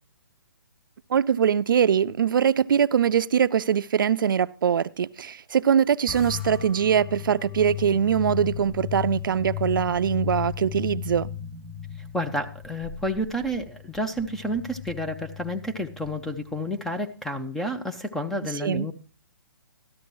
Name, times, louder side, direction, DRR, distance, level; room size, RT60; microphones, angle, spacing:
voice 1, 1.1-11.3 18.6-18.9, right 8 dB, 70° right, 0.4 m, -22 dB
sound 1, 6.1-16.7, left 10 dB, 20° left, 5.1 m, -36 dB
voice 2, 12.0-18.9, equal, 5° left, 0.5 m, -30 dB
13.0 x 11.5 x 3.0 m
hypercardioid pair, 155°, 12 cm